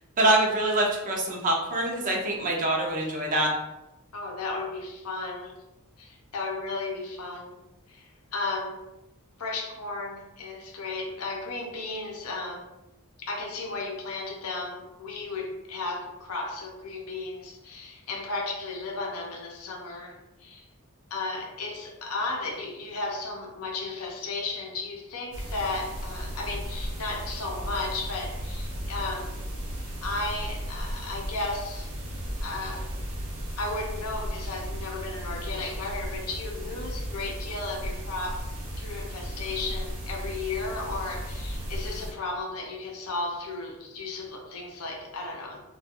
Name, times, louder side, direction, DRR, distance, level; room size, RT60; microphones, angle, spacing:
voice 1, 0.2-3.5, right 1 dB, 35° right, -1 dB, 0.5 m, -25 dB
voice 2, 4.1-5.6 6.0-7.6 7.9-8.8 9.4-12.7 13.3-20.6 21.1-29.4 30.0-31.9 32.4-32.9 33.6-38.4 38.8-45.6, left 3 dB, 80° left, 0 dB, 0.6 m, -34 dB
sound 1, 25.3-42.1, equal, 70° right, 0.8 m, -35 dB
2.4 x 2.2 x 2.8 m, 0.94 s
head